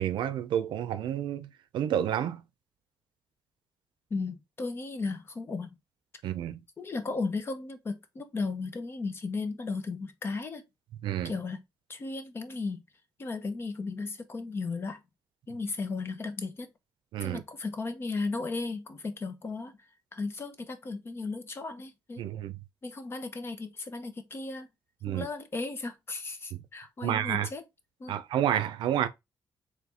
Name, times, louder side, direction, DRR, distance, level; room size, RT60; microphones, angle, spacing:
voice 1, 0.0-2.4 6.2-6.6 11.0-11.3 17.1-17.4 22.2-22.6 25.0-25.3 26.5-26.6 27.0-27.5 28.1-29.1, right 10 dB, 90° right, 0.6 m, -30 dB
voice 2, 4.1-5.8 6.8-10.6 11.2-11.6 11.9-12.8 13.2-15.0 15.5-16.7 17.2-19.7 20.1-22.2 22.8-24.7 25.1-27.6 28.0-28.1, left 3 dB, 30° left, 0.7 m, -35 dB
4.1 x 3.2 x 3.4 m
cardioid pair, 145°, 8 cm